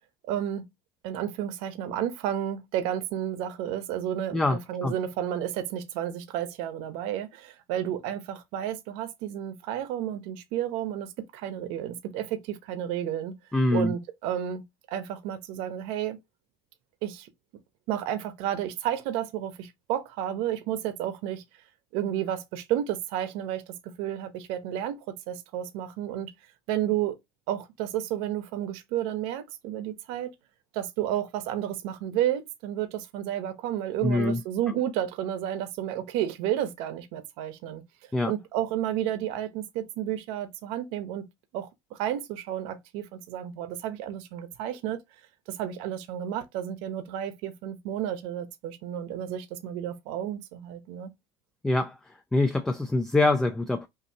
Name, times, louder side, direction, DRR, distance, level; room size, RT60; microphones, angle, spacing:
voice 1, 0.2-0.7 1.0-13.3 13.7-14.6 14.9-16.2 17.0-17.3 17.9-21.4 21.9-25.0 25.3-26.3 26.7-27.2 27.5-30.3 30.7-37.8 38.3-41.2 41.5-45.0 45.5-51.1, right 11 dB, 65° right, 0.9 m, -31 dB
voice 2, 4.3-4.9 13.5-13.9 34.0-34.4 38.1-38.3 51.6-52.0 52.3-53.9, left 2 dB, 5° left, 0.3 m, -24 dB
5.7 x 2.7 x 2.7 m
cardioid pair, 175°, 10 cm